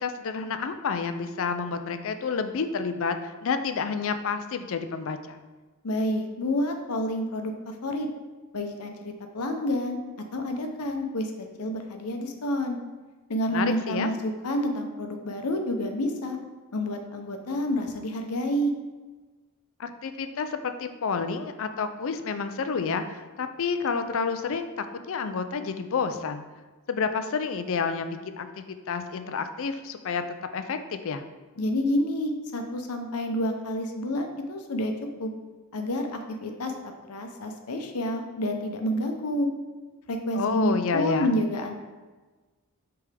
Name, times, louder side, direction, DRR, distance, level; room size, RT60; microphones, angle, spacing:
voice 1, 0.0-5.4 13.5-14.1 19.8-26.4 26.9-30.2 30.5-31.2 40.3-41.4, left 5 dB, 60° left, 9 dB, 0.4 m, -29 dB
voice 2, 5.8-8.1 8.5-10.0 10.3-12.8 13.3-16.4 16.7-18.7 31.6-34.9 35.2-35.3 35.7-36.1 36.4-36.7 37.1-39.5 40.1-41.8, equal, 85° left, 4 dB, 0.8 m, -29 dB
8.1 x 3.5 x 3.4 m, 1.3 s
head